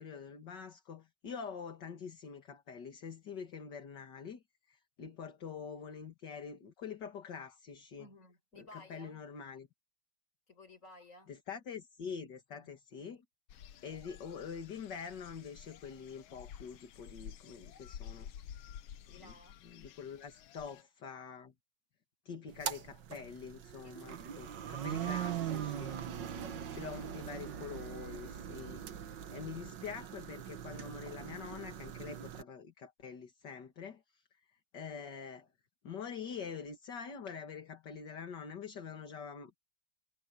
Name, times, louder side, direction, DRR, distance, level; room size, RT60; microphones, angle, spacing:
voice 1, 0.0-8.1 8.6-9.7 11.3-13.2 13.8-18.3 19.2-19.3 19.6-21.5 22.3-26.0 26.7-28.8 29.3-34.2 34.7-35.5 35.8-39.6, left 6 dB, 55° left, 2.5 m, -45 dB
voice 2, 8.0-9.2 10.5-11.3 12.5-12.7 19.1-19.6 23.8-24.3 25.9-26.3, left 2 dB, 35° left, 4.9 m, -56 dB
sound 1, 13.5-20.8, left 9 dB, 70° left, 1.7 m, -51 dB
sound 2, 22.5-32.4, right 9 dB, 60° right, 1.7 m, -41 dB
omnidirectional pair, 2.4 m